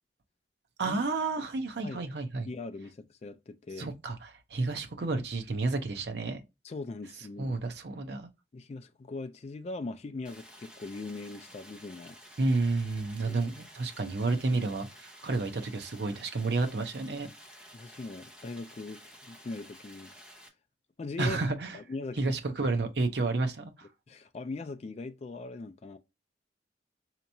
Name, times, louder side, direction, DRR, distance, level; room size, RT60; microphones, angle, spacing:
voice 1, 0.8-2.5 3.8-6.4 7.4-8.3 12.4-17.3 21.2-21.8 22.2-23.9, right 3 dB, 65° right, 0.6 m, -31 dB
voice 2, 2.5-3.9 6.6-7.6 8.5-12.2 13.3-13.4 17.7-20.1 21.0-21.4 21.7-22.4 24.1-26.0, left 3 dB, 35° left, 0.3 m, -40 dB
Stream, 10.2-20.5, equal, 5° right, 0.7 m, -52 dB
4.3 x 2.9 x 2.6 m
head